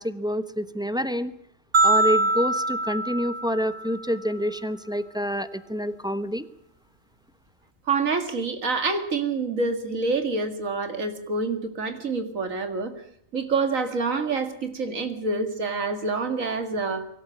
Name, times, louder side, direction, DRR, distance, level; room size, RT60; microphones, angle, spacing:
voice 1, 0.0-1.3 1.8-6.5, equal, 5° right, 11 dB, 0.9 m, -27 dB
sound 1, 1.7-4.1, right 2 dB, 35° right, 1.2 m, -23 dB
voice 2, 7.9-12.9 13.3-17.0, right 4 dB, 85° right, 7 dB, 2.4 m, -27 dB
24.0 x 12.5 x 10.0 m, 0.69 s
omnidirectional pair, 1.4 m